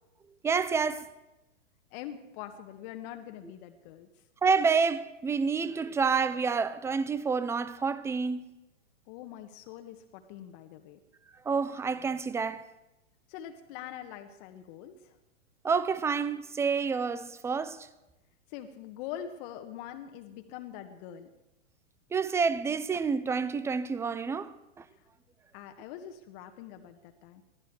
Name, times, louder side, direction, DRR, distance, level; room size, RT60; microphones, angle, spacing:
voice 1, 0.4-1.1 4.4-8.4 11.5-12.7 15.6-17.9 22.1-24.8, right 5 dB, 5° right, 0.5 m, -28 dB
voice 2, 1.9-4.1 9.1-11.0 13.3-15.2 18.5-21.3 24.9-25.0 25.5-27.4, left 10 dB, 40° left, 1.4 m, -44 dB
21.0 x 14.5 x 4.7 m
hypercardioid pair, 115°, 38 cm